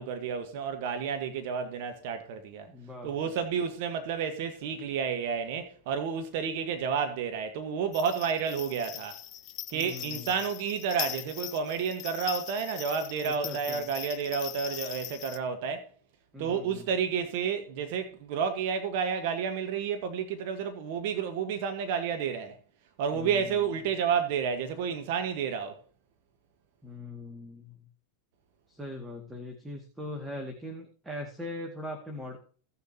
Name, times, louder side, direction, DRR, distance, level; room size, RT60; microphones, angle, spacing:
voice 1, 0.0-2.7 3.0-9.2 9.7-15.9 16.4-22.6 23.0-25.8, right 6 dB, 60° right, 1.3 m, -31 dB
voice 2, 2.7-3.3 9.7-10.3 13.2-13.9 16.3-16.9 23.1-23.6 26.8-27.9 28.7-32.4, left 1 dB, 10° right, 2.0 m, -41 dB
sound 1, 7.9-15.4, left 12 dB, 45° left, 0.9 m, -40 dB
16.5 x 6.9 x 2.8 m
hypercardioid pair, 105°, 0 cm